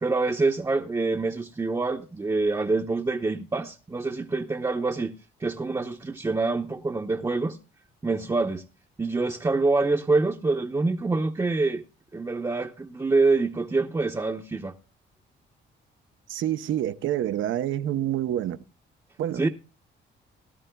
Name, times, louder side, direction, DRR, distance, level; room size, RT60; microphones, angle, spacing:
voice 1, 0.0-5.1 5.4-7.6 8.0-8.6 9.0-11.8 12.1-14.7 19.3-19.5, right 3 dB, 15° right, 0.7 m, -26 dB
voice 2, 16.3-18.6 19.2-19.5, right 11 dB, 75° right, 0.7 m, -27 dB
18.5 x 12.0 x 2.3 m
cardioid pair, 90°, 20 cm